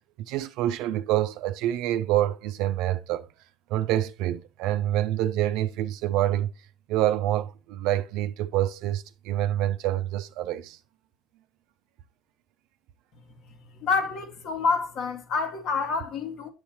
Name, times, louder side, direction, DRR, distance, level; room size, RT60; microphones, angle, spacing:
voice 1, 0.3-3.3 3.7-6.5 6.9-10.8, right 13 dB, 70° right, 0.4 m, -26 dB
voice 2, 13.8-16.5, left 4 dB, 65° left, 1.5 m, -27 dB
8.4 x 6.4 x 2.8 m
hypercardioid pair, 65°, 0 cm